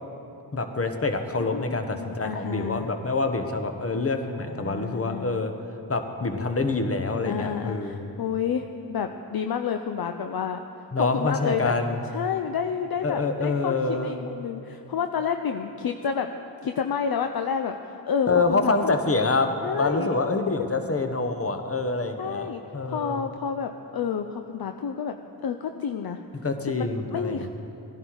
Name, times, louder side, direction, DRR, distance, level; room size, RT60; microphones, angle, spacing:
voice 1, 0.5-5.5 5.9-8.1 10.9-12.0 13.0-14.2 18.3-23.2 26.4-27.5, left 3 dB, 30° left, 6 dB, 1.3 m, -26 dB
voice 2, 1.4-2.9 4.4-5.3 7.3-11.7 12.1-16.3 16.6-18.9 19.6-20.1 22.2-22.6 22.9-25.1 25.4-26.2 26.8-27.5, left 7 dB, 55° left, 6 dB, 0.7 m, -30 dB
16.5 x 10.5 x 4.8 m, 2.9 s
cardioid pair, 50°, 44 cm